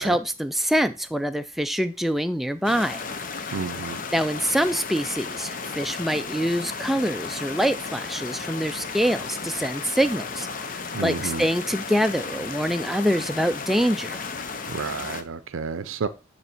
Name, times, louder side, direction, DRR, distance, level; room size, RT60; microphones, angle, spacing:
voice 1, 0.0-3.0 4.1-14.2, equal, ahead, 0.3 m, -25 dB
sound 1, 2.6-15.2, left 5 dB, 40° left, 0.6 m, -34 dB
voice 2, 3.5-4.0 10.9-11.4 14.7-16.1, right 5 dB, 75° right, 0.5 m, -31 dB
9.4 x 3.2 x 4.4 m
head